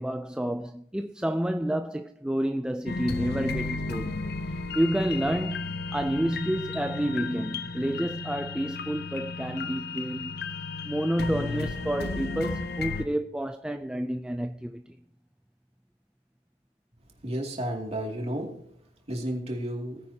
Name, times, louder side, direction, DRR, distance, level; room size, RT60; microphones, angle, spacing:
voice 1, 0.0-4.2 4.7-10.3 10.8-15.0, right 1 dB, 5° right, 0.3 m, -29 dB
sound 1, 2.9-13.0, left 3 dB, 55° left, 0.8 m, -34 dB
voice 2, 17.2-18.5 19.1-20.0, right 1 dB, 35° right, 2.4 m, -32 dB
18.5 x 9.5 x 2.8 m
head